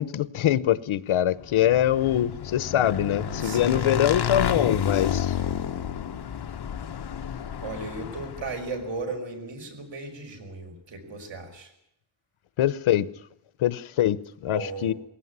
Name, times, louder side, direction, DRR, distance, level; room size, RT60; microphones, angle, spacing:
voice 1, 0.0-5.4 12.6-13.1 13.6-14.9, left 11 dB, 85° left, 17 dB, 1.0 m, -23 dB
Motorcycle / Engine, 1.5-8.8, left 8 dB, 55° left, 1.3 m, -30 dB
voice 2, 3.4-4.0 7.6-11.7 14.5-14.9, right 3 dB, 65° right, 4 dB, 5.8 m, -36 dB
21.0 x 17.5 x 9.6 m, 0.77 s
wide cardioid pair, 170°, 47 cm